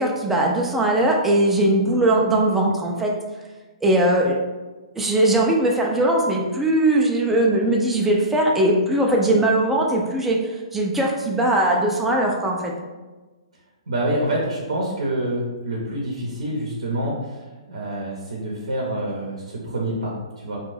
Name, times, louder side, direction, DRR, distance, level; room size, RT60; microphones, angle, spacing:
voice 1, 0.0-3.1 3.8-4.4 4.9-12.7, right 1 dB, 5° right, -2 dB, 0.3 m, -20 dB
voice 2, 13.9-17.4 17.7-20.6, right 1 dB, 80° right, -3 dB, 0.6 m, -27 dB
2.5 x 2.2 x 3.2 m, 1.2 s
hypercardioid pair, 130°, 3 cm